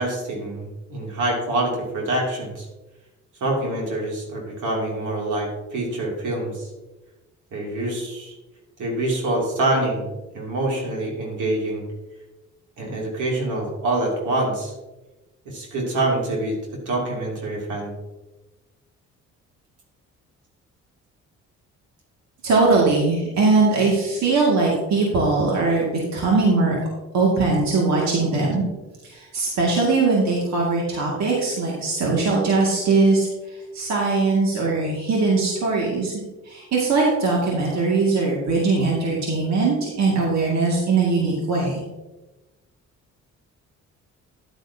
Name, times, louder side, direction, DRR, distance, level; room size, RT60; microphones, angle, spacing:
voice 1, 0.0-2.7 3.4-6.7 7.5-8.3 8.8-11.9 12.8-14.7 15.4-17.9, right 2 dB, 80° right, -2 dB, 2.9 m, -26 dB
voice 2, 22.4-26.7 27.1-28.7 29.0-33.3 33.7-36.1 36.4-41.8, right 3 dB, 65° right, -4 dB, 2.3 m, -20 dB
10.5 x 9.3 x 2.8 m, 1.1 s
cardioid pair, 90°, 30 cm